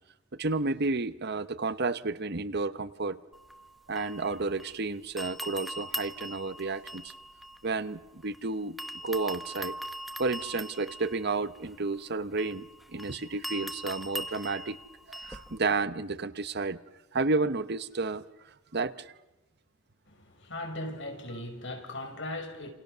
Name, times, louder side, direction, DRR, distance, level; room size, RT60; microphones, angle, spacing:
voice 1, 0.4-3.2 3.9-7.1 7.6-8.8 9.0-9.8 10.2-14.8 15.1-16.8 17.1-18.2 18.7-19.1, right 3 dB, 50° right, 1.0 m, -31 dB
sound 1, 3.3-4.8 5.2-8.4 8.8-15.6, equal, ahead, 1.4 m, -41 dB
voice 2, 20.1-22.7, left 1 dB, 60° left, 5.9 m, -38 dB
30.0 x 28.5 x 6.9 m
head